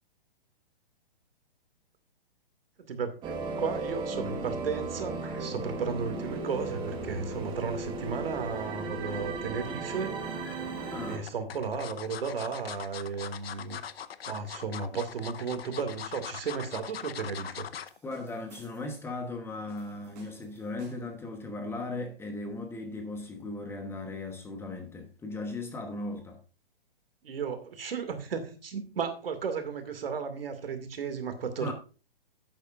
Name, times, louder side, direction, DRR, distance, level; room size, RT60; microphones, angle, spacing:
voice 1, 2.9-10.1 11.1-13.8 14.3-17.7 27.2-31.7, right 5 dB, 70° right, 2.3 m, -34 dB
sound 1, 3.2-11.2, right 3 dB, 15° right, 1.2 m, -35 dB
sound 2, 10.0-10.6 11.3-18.0 18.4-18.6 18.9-19.0, left 8 dB, 80° left, 0.8 m, -41 dB
voice 2, 10.9-11.2 18.0-26.4 31.6-31.7, left 2 dB, 10° left, 1.1 m, -37 dB
sound 3, 17.9-19.0 19.7-21.2, right 3 dB, 45° right, 4.4 m, -56 dB
12.0 x 8.7 x 2.5 m
hypercardioid pair, 140°, 30 cm